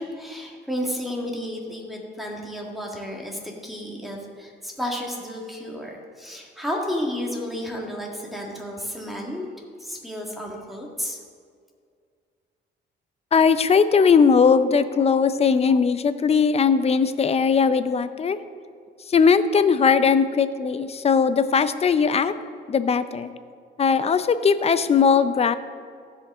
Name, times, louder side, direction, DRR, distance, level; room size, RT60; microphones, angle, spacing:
voice 1, 0.0-9.5 9.8-11.2, equal, ahead, -2 dB, 1.8 m, -32 dB
voice 2, 13.3-18.4 19.1-22.3 22.7-23.3 23.8-25.5, left 6 dB, 30° left, 12 dB, 0.5 m, -19 dB
15.5 x 5.2 x 3.7 m, 2.2 s
cardioid pair, 90°, 20 cm